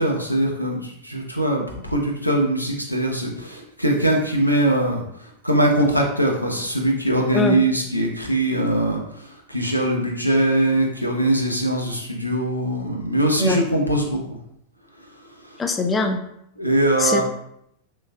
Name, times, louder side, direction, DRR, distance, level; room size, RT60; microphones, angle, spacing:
voice 1, 0.0-14.4 16.6-17.2, right 1 dB, 90° left, 0 dB, 0.5 m, -22 dB
voice 2, 15.6-16.2 17.0-17.2, left 3 dB, 15° left, 5 dB, 0.3 m, -22 dB
3.3 x 3.1 x 2.2 m, 0.76 s
figure-of-eight pair, 90°, 0 cm